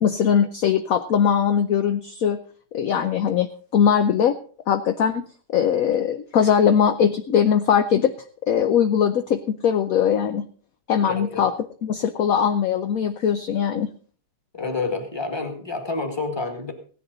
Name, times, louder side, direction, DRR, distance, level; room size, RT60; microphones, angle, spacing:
voice 1, 0.0-2.4 2.7-3.5 3.7-4.3 4.7-8.1 8.5-10.5 10.9-11.5 11.8-13.9, left 8 dB, 60° left, 8 dB, 1.0 m, -20 dB
voice 2, 11.0-11.5 14.5-16.7, left 3 dB, 15° left, 5 dB, 2.0 m, -28 dB
17.0 x 11.0 x 4.0 m, 0.43 s
omnidirectional pair, 2.0 m